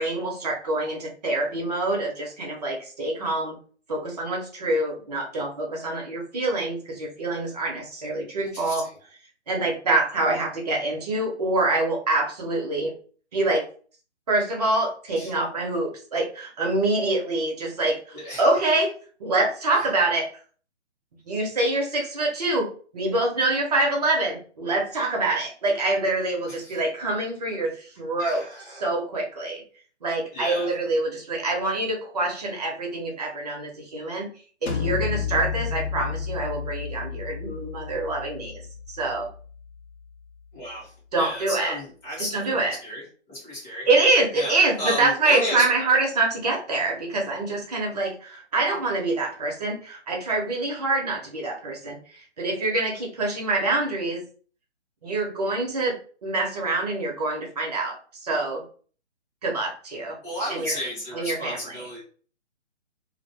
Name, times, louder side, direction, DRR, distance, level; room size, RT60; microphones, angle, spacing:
voice 1, 0.0-3.6 3.9-8.9 9.5-12.9 13.3-13.7 14.3-18.9 19.2-20.3 21.3-28.4 28.7-29.6 30.0-34.3 34.6-38.6 38.9-39.3 41.1-41.8 42.2-42.8 43.9-54.2 55.0-55.9 56.2-58.6 59.4-60.2 60.5-60.7 61.1-61.9, right 2 dB, 35° right, 0 dB, 0.7 m, -25 dB
voice 2, 8.4-8.8 15.2-15.3 18.1-18.4 26.5-26.8 28.2-28.9 30.3-30.7 40.5-40.9 41.2-43.0 43.3-43.9 44.3-45.6 60.2-62.0, equal, 10° left, -8 dB, 0.8 m, -33 dB
sound 1, 34.7-40.3, left 7 dB, 65° left, 0.7 m, -32 dB
2.4 x 2.0 x 3.3 m, 0.43 s
figure-of-eight pair, 140°, 35 cm